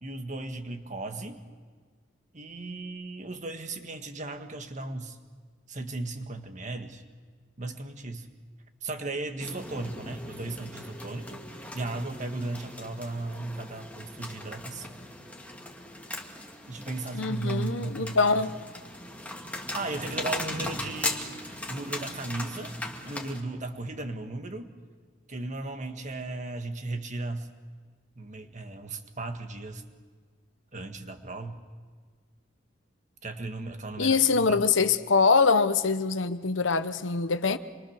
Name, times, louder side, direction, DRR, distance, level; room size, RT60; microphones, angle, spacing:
voice 1, 0.0-1.4 2.3-5.2 5.7-7.0 7.6-8.3 8.8-14.9 16.7-18.3 19.7-22.8 23.0-24.7 25.3-27.5 28.2-29.8 30.7-31.6 33.2-34.6, right 2 dB, 40° right, 1.7 m, -36 dB
sound 1, 9.4-23.4, left 1 dB, 10° left, 2.1 m, -38 dB
voice 2, 17.1-18.5 34.0-37.6, left 4 dB, 80° left, 1.0 m, -24 dB
27.0 x 23.5 x 6.6 m
head